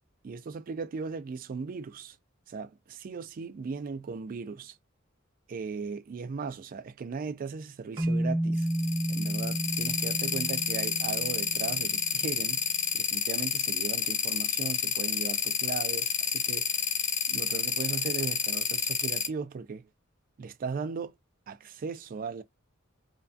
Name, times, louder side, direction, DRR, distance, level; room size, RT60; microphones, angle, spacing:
voice 1, 0.2-2.2 2.5-4.8 5.5-8.7 9.1-12.6 12.9-16.8 17.3-19.9 20.4-21.1 21.5-22.4, right 5 dB, 40° right, 0.3 m, -37 dB
sound 1, 8.0-12.3, right 1 dB, 20° right, 0.7 m, -32 dB
sound 2, 8.6-19.3, left 7 dB, 35° left, 0.4 m, -29 dB
2.8 x 2.3 x 2.6 m
head